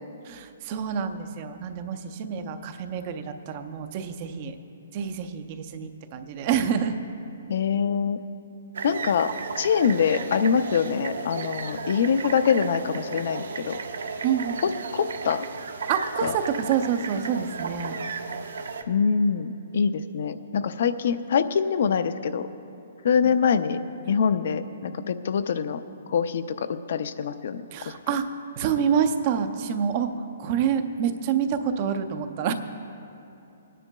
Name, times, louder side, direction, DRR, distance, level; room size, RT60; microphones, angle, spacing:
voice 1, 0.2-4.5 4.9-7.0 14.2-14.6 15.9-18.0 23.2-23.3 27.7-28.3 28.6-30.1 30.4-32.5, right 7 dB, 25° right, 8 dB, 0.5 m, -27 dB
voice 2, 7.5-8.2 8.8-9.3 9.6-13.8 14.6-15.4 16.2-16.3 18.9-22.5 23.0-23.8 24.1-25.8 26.1-27.6, left 6 dB, 50° left, 12 dB, 0.4 m, -24 dB
sound 1, 8.7-18.8, right 5 dB, 75° right, 0.6 m, -34 dB
25.5 x 9.9 x 2.2 m, 2.8 s
hypercardioid pair, 175°, 0 cm